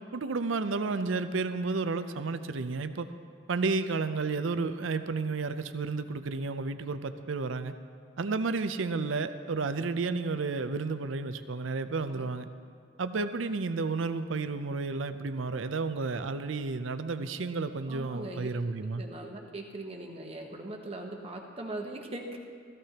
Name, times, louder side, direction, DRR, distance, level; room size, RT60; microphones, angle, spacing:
voice 1, 0.1-3.1 3.5-7.7 8.2-12.5 13.0-19.0, right 4 dB, 85° right, 11 dB, 0.6 m, -32 dB
voice 2, 11.9-12.3 17.9-18.5 18.8-22.4, right 2 dB, 30° right, 1 dB, 1.1 m, -40 dB
17.5 x 14.5 x 2.9 m, 2.2 s
head